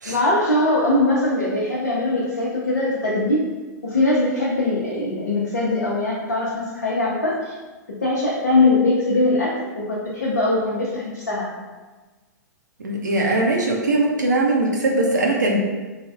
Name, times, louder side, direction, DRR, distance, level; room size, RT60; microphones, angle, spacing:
voice 1, 0.0-3.4 3.8-7.5 8.0-11.5, left 2 dB, 80° left, -6 dB, 0.5 m, -21 dB
voice 2, 12.8-15.6, right 2 dB, 75° right, -1 dB, 0.5 m, -20 dB
3.2 x 2.0 x 2.4 m, 1.3 s
figure-of-eight pair, 105°, 10 cm